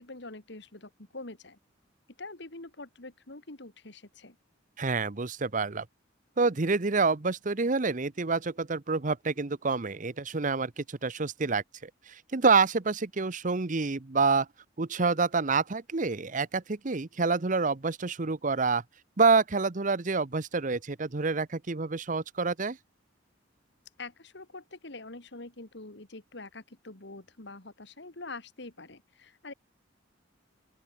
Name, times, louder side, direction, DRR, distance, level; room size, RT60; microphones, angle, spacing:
voice 1, 0.0-1.6 2.2-4.4 24.0-29.5, left 2 dB, 65° left, 2.4 m, -45 dB
voice 2, 4.8-5.9 6.4-14.5 14.8-18.8 19.2-22.8, right 4 dB, 40° right, 0.9 m, -27 dB
open air
head